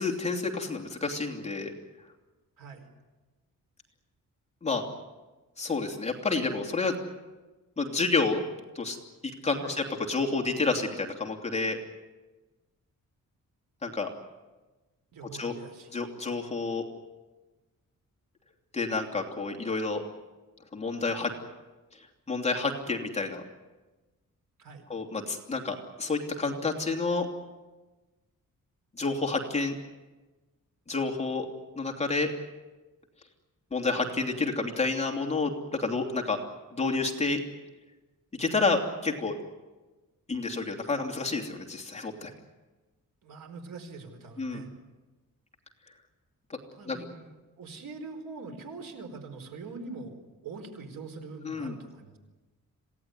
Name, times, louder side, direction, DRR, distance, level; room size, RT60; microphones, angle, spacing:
voice 1, 0.0-1.7 4.6-4.8 5.6-7.0 7.8-8.4 8.7-9.0 9.2-11.8 13.8-14.1 15.3-15.5 15.9-16.8 18.7-20.0 20.7-21.3 22.3-23.4 24.9-27.3 29.0-29.7 30.9-31.5 31.7-32.3 33.7-36.4 36.7-37.4 38.4-39.4 40.3-42.3 44.4-44.6 46.5-46.6 46.9-47.1 51.4-51.7, left 3 dB, 20° left, 0 dB, 2.8 m, -29 dB
voice 2, 2.6-2.9 9.6-9.8 15.1-15.9 24.6-24.9 43.2-44.7 46.7-52.2, right 4 dB, 85° right, 5 dB, 4.6 m, -43 dB
27.0 x 17.5 x 9.6 m, 1.2 s
wide cardioid pair, 175°, 32 cm